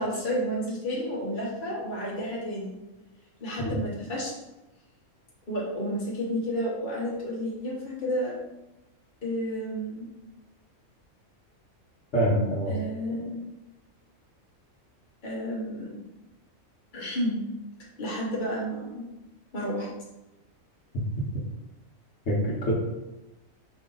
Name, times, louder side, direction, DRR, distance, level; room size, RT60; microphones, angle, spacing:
voice 1, 0.0-2.8 3.4-4.3 5.5-8.4 9.2-10.1 12.7-13.4 15.2-16.0 16.9-17.5 18.0-19.0 19.5-19.9, equal, 40° left, -5 dB, 1.2 m, -31 dB
voice 2, 12.1-12.8 22.3-22.7, equal, 55° left, -5 dB, 1.4 m, -25 dB
5.0 x 2.6 x 3.9 m, 0.99 s
omnidirectional pair, 1.4 m